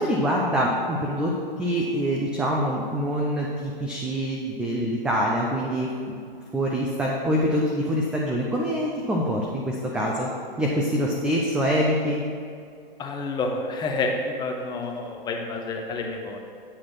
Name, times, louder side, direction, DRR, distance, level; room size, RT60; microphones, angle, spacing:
voice 1, 0.0-1.3 1.6-6.2 6.5-10.3 10.6-12.2, equal, 5° right, -2 dB, 0.4 m, -25 dB
voice 2, 13.0-16.4, left 3 dB, 15° left, 2 dB, 0.9 m, -29 dB
8.8 x 4.8 x 6.0 m, 2.3 s
hypercardioid pair, 125°, 29 cm